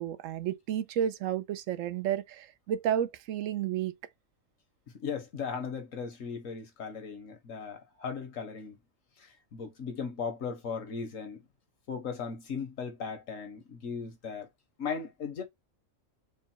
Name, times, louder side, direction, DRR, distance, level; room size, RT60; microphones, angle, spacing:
voice 1, 0.0-4.0, right 10 dB, 80° right, 1.0 m, -31 dB
voice 2, 5.0-8.8 9.2-11.5 11.9-14.5 14.8-15.4, left 6 dB, 90° left, 1.7 m, -37 dB
4.6 x 2.2 x 4.4 m
omnidirectional pair, 1.3 m